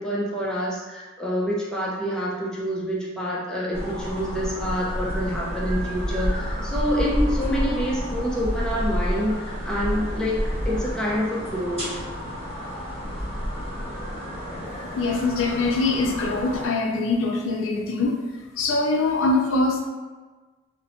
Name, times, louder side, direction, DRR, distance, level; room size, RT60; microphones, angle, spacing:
voice 1, 0.0-11.9, equal, 5° left, -6 dB, 0.4 m, -27 dB
sound 1, 3.7-16.7, equal, 35° right, 1.1 m, -29 dB
voice 2, 15.0-18.2 18.6-19.9, left 3 dB, 90° left, 2 dB, 0.4 m, -23 dB
2.7 x 2.1 x 2.6 m, 1.3 s
head